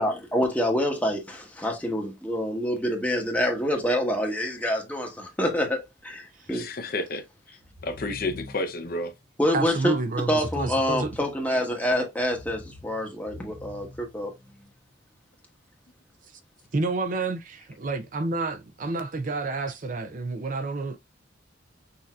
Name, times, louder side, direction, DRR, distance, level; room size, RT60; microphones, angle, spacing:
voice 1, 0.0-6.7 9.4-9.9 10.3-14.3, equal, 10° left, 1.3 m, -26 dB
voice 2, 6.5-7.2 7.8-9.1, left 2 dB, 50° left, 0.7 m, -30 dB
sound 1, 7.6-8.9 10.3-11.7 12.2-14.7, left 1 dB, 25° right, 1.3 m, -44 dB
voice 3, 9.5-11.2 16.7-21.0, right 3 dB, 45° right, 0.6 m, -29 dB
6.3 x 2.8 x 2.4 m
head